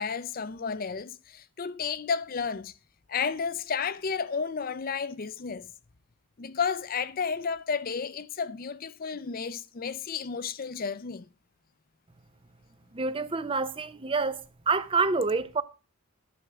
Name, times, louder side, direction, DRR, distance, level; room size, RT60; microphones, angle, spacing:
voice 1, 0.0-2.7 3.1-5.7 6.4-11.3, left 6 dB, 40° left, 0.5 m, -32 dB
voice 2, 12.9-14.4 14.7-15.6, right 4 dB, 25° right, 0.5 m, -27 dB
11.0 x 6.0 x 6.0 m
head